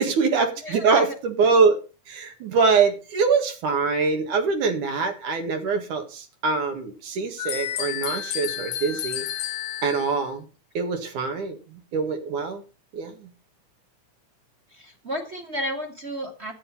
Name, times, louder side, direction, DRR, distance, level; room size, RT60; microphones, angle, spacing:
voice 1, 0.0-1.8 2.1-9.2 9.8-10.4 10.7-12.6 12.9-13.1, right 5 dB, 80° right, 5 dB, 3.3 m, -23 dB
voice 2, 0.6-1.2 14.7-16.5, equal, 30° right, 2 dB, 1.4 m, -32 dB
sound 1, 7.4-10.2, left 11 dB, 70° left, 1.9 m, -31 dB
11.0 x 8.6 x 5.5 m, 0.33 s
omnidirectional pair, 3.6 m